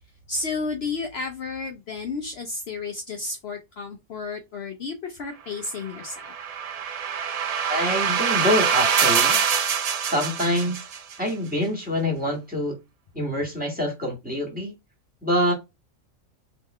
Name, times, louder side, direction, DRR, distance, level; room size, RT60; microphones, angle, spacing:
voice 1, 0.3-6.3, left 4 dB, 55° left, 0.9 m, -32 dB
sound 1, 5.9-11.1, right 7 dB, 70° right, 0.3 m, -24 dB
voice 2, 7.7-9.4 10.1-10.8 11.2-12.8 13.1-14.7 15.2-15.5, left 1 dB, 5° right, 2.0 m, -25 dB
3.9 x 3.1 x 4.3 m
omnidirectional pair, 1.3 m